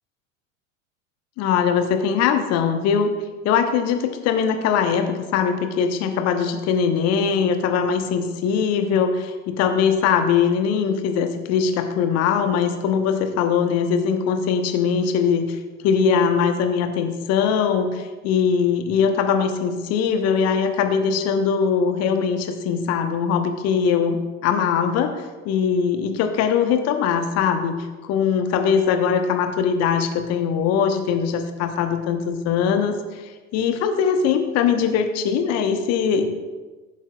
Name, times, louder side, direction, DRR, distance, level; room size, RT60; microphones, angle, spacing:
voice 1, 1.4-3.1 3.4-15.6 15.8-27.8 28.0-33.2 33.5-36.3, left 6 dB, 40° left, 7 dB, 1.0 m, -21 dB
15.5 x 7.2 x 2.3 m, 1.3 s
figure-of-eight pair, 75°, 39 cm